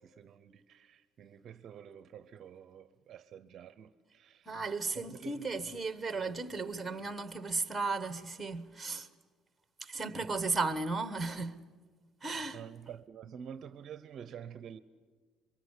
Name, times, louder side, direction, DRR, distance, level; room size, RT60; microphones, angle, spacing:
voice 1, 0.0-4.5 4.9-5.5 10.2-10.4 12.5-14.8, right 8 dB, 35° right, 0.7 m, -49 dB
voice 2, 4.5-9.1 9.8-11.6 12.2-12.6, right 3 dB, 5° right, 1.1 m, -35 dB
28.5 x 23.5 x 8.2 m
cardioid pair, 180°, 0 cm